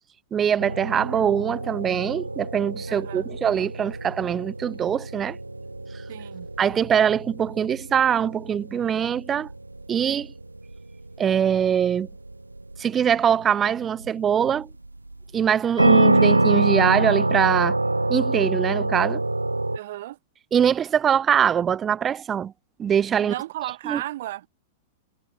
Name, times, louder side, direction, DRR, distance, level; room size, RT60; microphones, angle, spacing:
voice 1, 0.3-5.4 6.6-9.5 9.9-10.3 11.2-12.1 12.8-14.7 15.3-17.8 18.1-19.2 20.5-22.5 22.8-23.3 23.8-24.0, right 8 dB, 20° right, 0.6 m, -23 dB
sound 1, 0.6-19.8, right 2 dB, 85° right, 0.6 m, -26 dB
voice 2, 2.9-3.2 6.1-6.5 19.7-20.2 23.2-24.5, right 15 dB, 55° right, 1.2 m, -34 dB
figure-of-eight pair, 100°, 0 cm